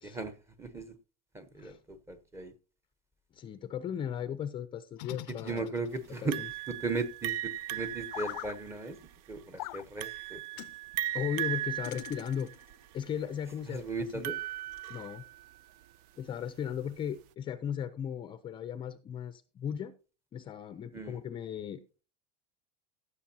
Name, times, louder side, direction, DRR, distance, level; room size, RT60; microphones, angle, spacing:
voice 1, 0.0-0.9 1.3-2.5 5.4-6.4 6.7-9.0 9.3-10.4 13.7-14.4 20.9-21.2, right 3 dB, 15° right, 0.9 m, -37 dB
voice 2, 3.3-5.7 6.2-6.5 11.1-12.5 12.9-14.3 14.9-15.2 16.2-19.9 20.3-22.0, left 8 dB, 25° left, 0.5 m, -37 dB
sound 1, 5.0-6.2 8.1-8.6 9.6-9.8 10.6-10.8 11.8-12.7, left 19 dB, 85° left, 0.5 m, -42 dB
sound 2, 6.3-15.6, right 14 dB, 60° right, 0.5 m, -38 dB
15.5 x 6.7 x 2.8 m
supercardioid pair, 150°, 21 cm